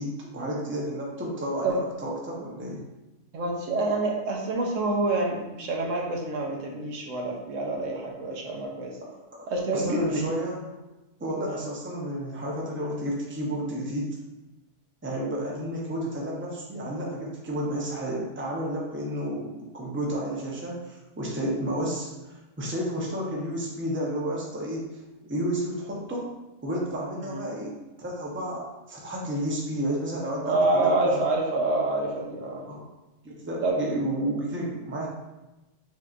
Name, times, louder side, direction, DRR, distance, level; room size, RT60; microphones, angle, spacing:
voice 1, 0.0-2.8 9.0-9.1 9.4-9.5 9.7-10.7 11.2-14.2 15.0-24.9 25.2-26.3 26.6-31.2 32.7-32.8 33.2-35.1, right 1 dB, 15° right, -3 dB, 0.6 m, -31 dB
voice 2, 3.3-9.0 9.5-10.3 11.5-11.6 27.2-27.4 30.4-32.7 33.6-33.8, right 2 dB, 90° right, 0 dB, 1.1 m, -27 dB
5.9 x 2.8 x 2.5 m, 1.0 s
omnidirectional pair, 1.3 m